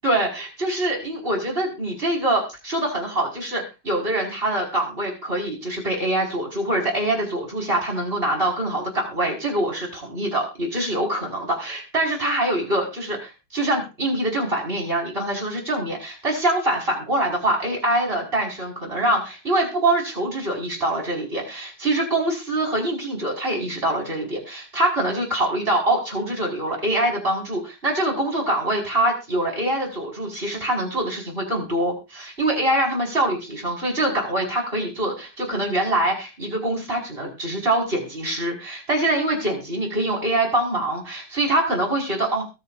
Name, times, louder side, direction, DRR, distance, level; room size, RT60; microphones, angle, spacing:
voice 1, 0.0-42.4, right 1 dB, 25° right, 0 dB, 5.4 m, -24 dB
22.0 x 9.8 x 2.6 m, 0.29 s
omnidirectional pair, 2.4 m